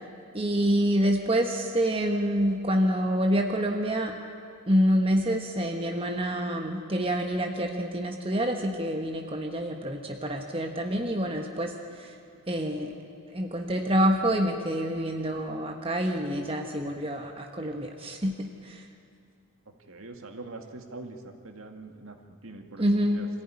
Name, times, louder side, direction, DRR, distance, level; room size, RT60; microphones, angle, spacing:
voice 1, 0.3-4.1 4.7-11.7 12.0-12.1 12.5-12.9 13.3-18.8 22.8-23.2, equal, 25° right, 3 dB, 1.3 m, -27 dB
voice 2, 19.9-22.9 23.1-23.3, right 2 dB, 65° right, 4 dB, 2.1 m, -43 dB
26.0 x 15.0 x 9.9 m, 2.5 s
head